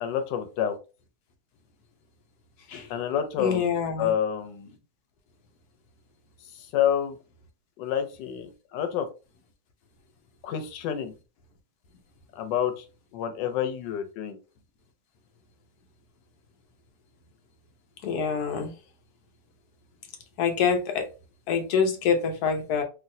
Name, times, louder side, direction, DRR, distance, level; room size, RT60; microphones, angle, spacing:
voice 1, 0.0-0.8 2.9-3.6 4.0-4.7 6.5-7.2 7.8-9.1 10.4-11.1 12.4-12.8 13.1-14.4, left 9 dB, 85° left, 1.3 m, -28 dB
voice 2, 3.4-4.1 18.0-18.7 20.4-21.1 21.5-22.8, left 6 dB, 70° left, 1.1 m, -25 dB
3.1 x 2.6 x 2.5 m
omnidirectional pair, 1.9 m